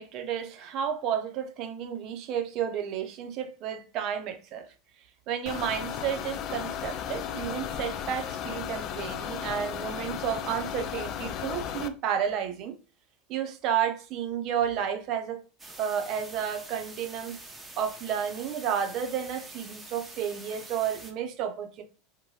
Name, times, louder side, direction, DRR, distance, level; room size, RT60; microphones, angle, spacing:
voice 1, 0.0-4.7 5.3-12.8 13.3-15.4 15.8-17.4 17.8-21.8, right 8 dB, 50° right, 0.6 m, -31 dB
sound 1, 5.5-11.9, left 9 dB, 50° left, 0.3 m, -35 dB
sound 2, 15.6-21.1, right 2 dB, 10° right, 0.7 m, -46 dB
2.6 x 2.2 x 3.0 m
hypercardioid pair, 90°, 0 cm